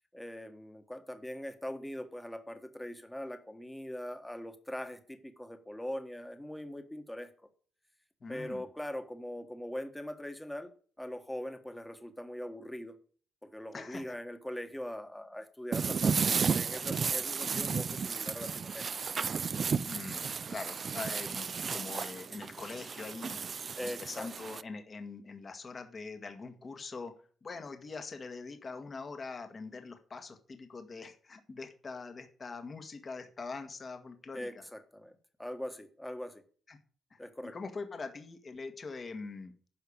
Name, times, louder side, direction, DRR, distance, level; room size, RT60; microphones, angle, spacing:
voice 1, 0.1-7.3 8.3-10.7 11.0-12.9 13.4-18.9 23.7-24.3 34.3-35.1 35.4-36.4 37.2-37.5, left 1 dB, 5° left, 7 dB, 1.5 m, -41 dB
voice 2, 8.2-8.6 13.7-14.1 19.8-23.4 23.8-27.1 27.4-34.6 36.7-36.8 37.1-39.5, left 4 dB, 35° left, 6 dB, 1.6 m, -43 dB
sound 1, 15.7-24.6, right 5 dB, 40° right, 0.4 m, -33 dB
10.0 x 5.7 x 8.6 m, 0.44 s
cardioid pair, 105°, 0 cm